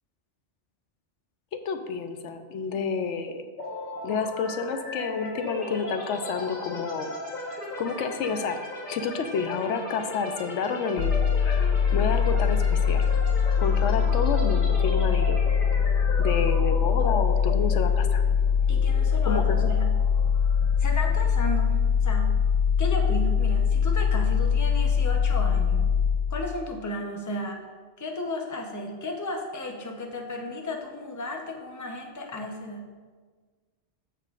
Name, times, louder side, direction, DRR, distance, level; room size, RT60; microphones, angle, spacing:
voice 1, 1.5-3.4 4.0-7.1 7.8-8.6 8.9-13.1 13.6-15.4 16.2-18.2 19.3-19.7, left 5 dB, 85° left, 8 dB, 0.9 m, -29 dB
sound 1, 3.6-21.3, left 1 dB, 40° left, 1.3 m, -37 dB
sound 2, 11.0-26.8, left 7 dB, 60° left, 0.4 m, -23 dB
voice 2, 18.7-20.0 20.8-22.4 22.8-25.9 26.3-27.6 28.0-32.9, left 1 dB, 20° left, 2 dB, 0.7 m, -34 dB
13.5 x 5.7 x 2.4 m, 1.5 s
omnidirectional pair, 1.2 m